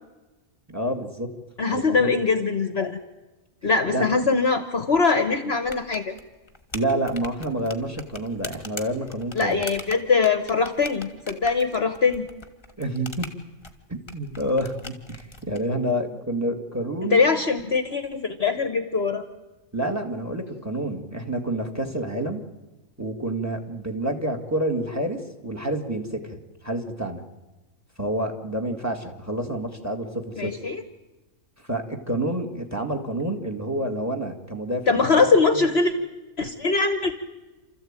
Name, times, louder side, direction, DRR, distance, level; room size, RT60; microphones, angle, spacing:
voice 1, 0.7-1.3 1.7-2.1 3.8-4.1 6.7-9.6 12.8-13.3 13.9-17.2 19.7-22.4 23.0-26.4 26.6-27.2 28.0-30.5 31.6-35.3 35.5-35.7, right 1 dB, 10° right, 6 dB, 2.2 m, -28 dB
voice 2, 1.6-3.0 3.6-6.1 9.4-12.3 17.0-19.2 30.4-30.8 34.9-35.9 36.4-37.1, left 4 dB, 45° left, 10 dB, 1.3 m, -22 dB
sound 1, 5.6-15.6, left 2 dB, 20° left, 1.6 m, -41 dB
28.5 x 14.0 x 9.0 m, 1.2 s
omnidirectional pair, 1.6 m